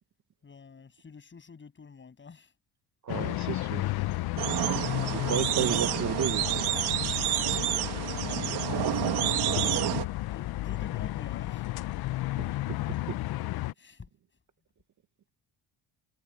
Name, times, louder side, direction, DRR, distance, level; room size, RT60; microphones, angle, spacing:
voice 1, 0.4-2.5 5.2-5.4 8.1-9.7 10.3-11.7 13.8-14.1, left 5 dB, 30° left, 7.8 m, -47 dB
voice 2, 3.0-3.9 5.1-6.7 12.4-12.8, right 10 dB, 45° right, 1.3 m, -33 dB
sound 1, 3.1-13.7, left 17 dB, 65° left, 0.8 m, -33 dB
sound 2, 4.4-10.1, right 13 dB, 70° right, 2.5 m, -29 dB
cardioid pair, 125°, 41 cm